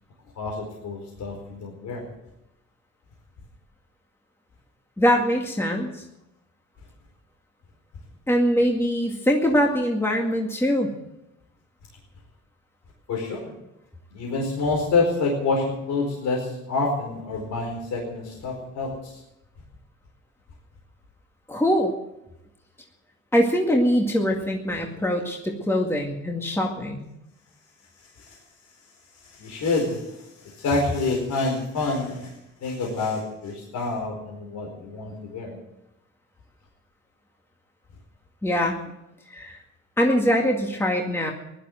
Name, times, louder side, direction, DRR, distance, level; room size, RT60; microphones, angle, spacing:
voice 1, 0.4-2.1 13.1-13.5 14.1-19.2 28.2-28.4 29.2-32.3 32.6-35.6, left 3 dB, 70° left, -1 dB, 4.7 m, -27 dB
voice 2, 5.0-6.0 8.3-10.9 21.5-21.9 23.3-27.1 38.4-38.8 39.3-39.6 40.0-41.3, equal, 10° left, 0 dB, 2.1 m, -23 dB
16.0 x 11.5 x 7.8 m, 0.88 s
cardioid pair, 90°, 30 cm